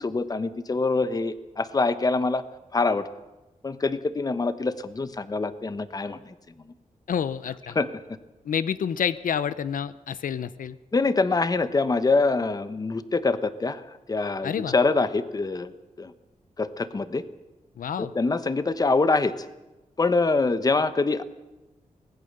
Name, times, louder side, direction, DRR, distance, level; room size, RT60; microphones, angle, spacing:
voice 1, 0.0-2.4 2.7-3.1 3.6-6.3 7.7-7.9 10.9-13.8 14.1-16.1 16.6-17.2 18.0-19.3 20.0-21.2, left 3 dB, 30° left, 12 dB, 1.1 m, -25 dB
voice 2, 7.1-7.8 8.4-10.8 14.4-14.7 17.8-18.1, left 8 dB, 85° left, 14 dB, 0.8 m, -28 dB
24.5 x 18.5 x 6.8 m, 1.0 s
wide cardioid pair, 150°, 14 cm